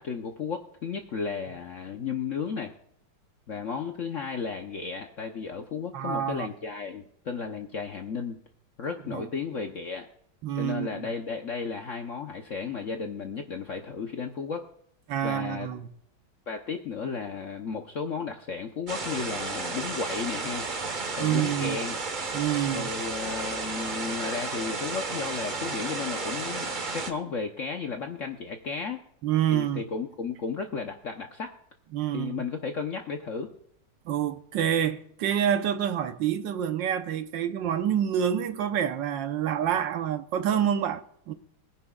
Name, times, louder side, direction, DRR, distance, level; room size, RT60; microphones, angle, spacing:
voice 1, 0.0-2.7 3.5-8.4 8.8-10.1 10.6-14.7 15.2-15.7 16.5-20.7 21.2-22.0 22.7-29.0 29.5-31.6 32.1-33.5, left 5 dB, 50° left, 1.1 m, -34 dB
voice 2, 5.9-6.5 9.1-9.2 10.4-10.9 15.1-15.9 21.2-21.8 22.3-22.9 29.2-29.8 31.9-32.4 34.1-41.3, right 9 dB, 90° right, 1.6 m, -27 dB
sound 1, 18.9-27.1, right 3 dB, 30° right, 1.1 m, -33 dB
21.5 x 10.0 x 2.4 m
omnidirectional pair, 2.0 m